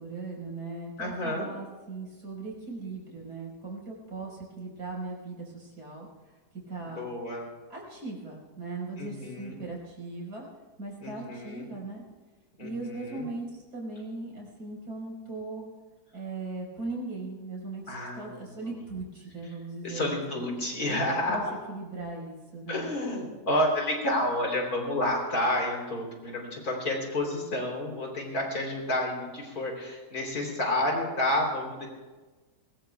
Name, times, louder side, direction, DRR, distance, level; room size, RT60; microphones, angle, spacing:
voice 1, 0.0-6.1 6.7-7.1 7.7-10.5 10.8-12.0 12.6-15.7 16.1-20.4 20.9-21.0 21.3-21.4 21.7-22.9, right 3 dB, 75° right, -3 dB, 5.5 m, -39 dB
voice 2, 1.0-1.5 6.8-7.5 9.0-9.6 11.0-11.7 12.6-13.3 17.9-18.8 19.8-21.5 22.7-31.9, left 1 dB, 70° left, 1 dB, 4.0 m, -30 dB
23.0 x 21.5 x 2.3 m, 1.3 s
omnidirectional pair, 1.7 m